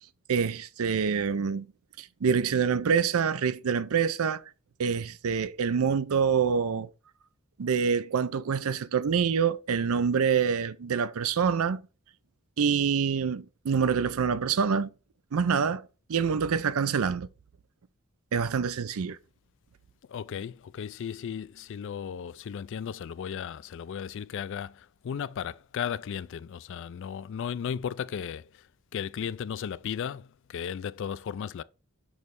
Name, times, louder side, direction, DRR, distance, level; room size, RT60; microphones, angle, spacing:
voice 1, 0.3-1.7 2.0-4.4 4.8-6.9 7.6-11.8 12.6-14.9 15.3-17.3 18.3-19.2, right 6 dB, 75° right, 0.5 m, -26 dB
voice 2, 20.1-28.6 28.9-31.6, left 8 dB, 60° left, 0.3 m, -35 dB
6.3 x 3.2 x 5.2 m
head